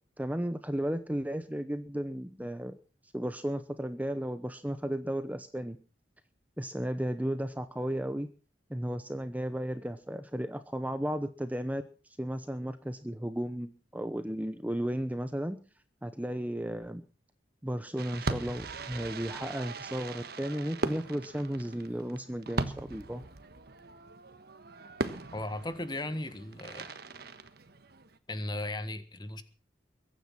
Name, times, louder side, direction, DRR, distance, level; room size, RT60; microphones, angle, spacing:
voice 1, 0.2-2.8 3.1-5.8 6.6-8.3 8.7-11.8 12.2-15.6 16.0-17.0 17.6-23.2, equal, 10° right, 10 dB, 0.9 m, -34 dB
Fireworks, 18.0-28.2, right 3 dB, 60° right, 1.4 m, -39 dB
voice 2, 25.3-26.9 28.3-29.4, left 1 dB, 25° left, 12 dB, 1.5 m, -36 dB
22.5 x 9.6 x 5.9 m, 0.38 s
head